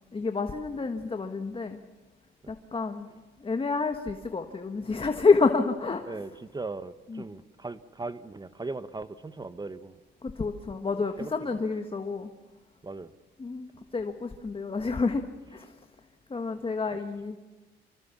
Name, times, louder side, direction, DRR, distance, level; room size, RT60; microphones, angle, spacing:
voice 1, 0.1-1.8 2.5-3.1 3.4-6.2 7.1-7.2 10.2-12.3 13.4-15.2 15.5-15.7 16.3-17.4, left 4 dB, 25° left, 6 dB, 1.6 m, -28 dB
voice 2, 6.0-9.9 10.9-11.6 12.8-13.1, right 3 dB, 20° right, 13 dB, 1.0 m, -39 dB
26.0 x 24.5 x 7.2 m, 1.2 s
cardioid pair, 90°, 20 cm